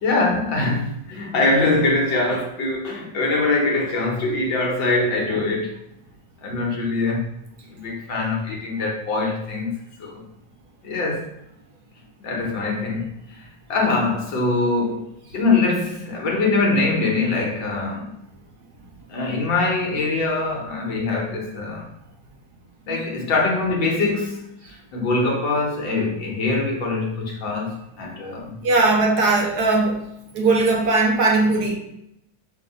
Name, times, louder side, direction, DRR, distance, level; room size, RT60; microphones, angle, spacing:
voice 1, 0.0-5.8 6.4-7.3 7.7-9.7 10.0-10.2 10.8-11.3 12.2-13.4 13.7-15.1 15.3-18.1 19.1-21.9 22.9-24.5 24.9-28.5, left 3 dB, 90° left, -1 dB, 2.2 m, -23 dB
voice 2, 28.6-30.0 30.3-31.7, right 3 dB, 65° right, 0 dB, 1.5 m, -19 dB
6.3 x 3.0 x 5.5 m, 0.80 s
omnidirectional pair, 2.0 m